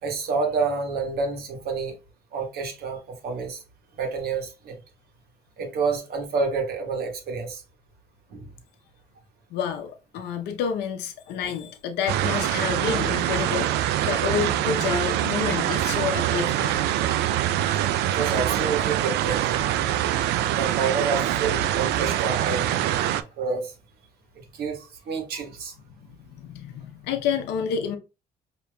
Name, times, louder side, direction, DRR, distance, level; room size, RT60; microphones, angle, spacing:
voice 1, 0.0-2.0 2.3-3.6 3.9-4.8 5.6-7.6 8.3-8.5 18.0-19.6 20.5-22.7 23.4-23.7 24.5-25.7, right 4 dB, 65° right, 1.3 m, -28 dB
voice 2, 9.5-16.8 23.1-23.2 26.0-28.0, left 7 dB, 85° left, 0.7 m, -29 dB
sound 1, 12.1-23.2, right 12 dB, 85° right, 0.4 m, -24 dB
5.0 x 2.9 x 2.2 m
cardioid pair, 110°, 17 cm